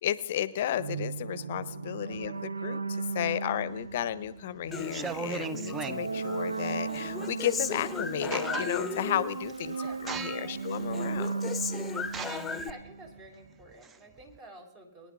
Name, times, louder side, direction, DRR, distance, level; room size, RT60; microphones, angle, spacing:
voice 1, 0.0-9.8 10.0-11.3, left 11 dB, 55° left, 16 dB, 0.6 m, -33 dB
sound 1, 0.7-13.3, right 4 dB, 80° right, 0.5 m, -36 dB
sound 2, 3.9-4.3 4.8-6.1 7.7-7.8 8.1-9.0 9.5-9.7 10.1-10.6 11.2-11.3 12.1-14.4, right 5 dB, 15° right, 0.5 m, -38 dB
Human voice, 4.7-5.9 6.2-9.4 9.7-10.5 10.7-12.7, left 5 dB, 10° left, 0.8 m, -36 dB
voice 2, 10.4-11.1 12.6-15.1, right 2 dB, 40° right, 4 dB, 3.5 m, -51 dB
23.5 x 10.0 x 2.4 m, 0.74 s
figure-of-eight pair, 115°, 0 cm